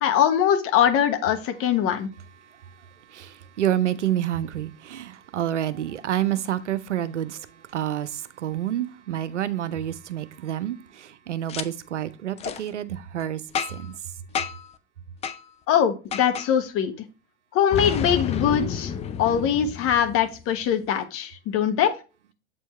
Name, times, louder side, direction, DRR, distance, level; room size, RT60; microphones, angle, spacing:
voice 1, 0.0-2.1 15.7-16.9 17.5-18.9 19.2-21.9, left 9 dB, 40° left, 1.1 m, -22 dB
voice 2, 3.1-7.4 7.7-13.4 13.7-13.9, right 11 dB, 85° right, 0.6 m, -28 dB
Boom, 11.5-11.6 12.4-12.6 13.5-13.9 14.3-14.7 15.2-15.4 16.1-16.5 17.7-20.4, left 7 dB, 20° left, 0.4 m, -30 dB
7.4 x 4.5 x 3.1 m
hypercardioid pair, 90°, 35 cm